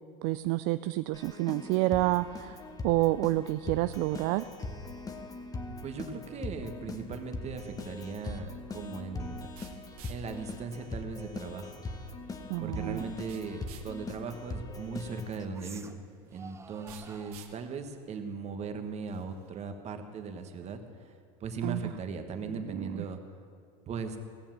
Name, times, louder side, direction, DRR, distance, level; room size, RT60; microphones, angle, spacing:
voice 1, 0.2-2.6 2.8-4.5 12.5-13.1 21.6-21.9 22.5-23.1, right 18 dB, 60° right, 12 dB, 0.4 m, -29 dB
Keyboard (musical), 1.1-15.5, left 2 dB, 20° left, 1.1 m, -41 dB
voice 2, 5.7-9.5 10.1-11.8 12.6-21.1 21.4-23.2 23.9-24.2, right 4 dB, 35° right, 6 dB, 1.3 m, -38 dB
sound 1, 7.1-19.5, right 7 dB, 75° right, 1.6 m, -57 dB
sound 2, 13.8-13.9 15.5-16.0 16.3-17.7 19.3-20.9, right 4 dB, 15° right, 0.7 m, -52 dB
17.0 x 7.2 x 7.5 m, 2.4 s
supercardioid pair, 105°, 19 cm